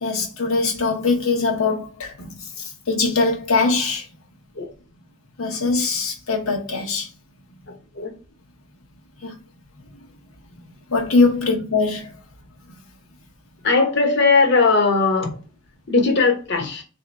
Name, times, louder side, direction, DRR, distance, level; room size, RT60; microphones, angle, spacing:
voice 1, 0.0-2.4 2.9-4.0 5.4-7.1 9.2-9.3 10.9-12.1, left 3 dB, 85° left, 0.9 m, -21 dB
voice 2, 13.6-15.3 15.9-16.8, left 4 dB, 55° left, 0.9 m, -18 dB
3.8 x 2.7 x 3.3 m
head